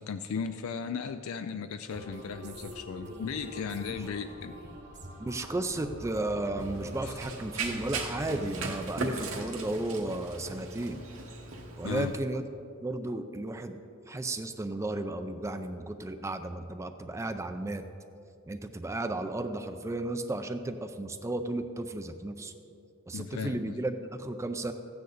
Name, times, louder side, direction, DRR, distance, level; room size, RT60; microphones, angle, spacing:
voice 1, 0.0-4.5 7.0-7.2 11.8-12.1 23.1-23.8, left 6 dB, 75° left, 9 dB, 0.4 m, -36 dB
sound 1, 1.9-8.5, right 1 dB, 55° right, 1.4 m, -45 dB
voice 2, 5.2-11.0 11.8-12.4 12.8-13.8 14.1-17.9 18.5-22.5 23.1-24.7, right 2 dB, 15° right, 8 dB, 0.4 m, -34 dB
Run, 6.6-12.1, right 3 dB, 70° right, 1.4 m, -38 dB
14.0 x 9.3 x 4.0 m, 2.7 s
head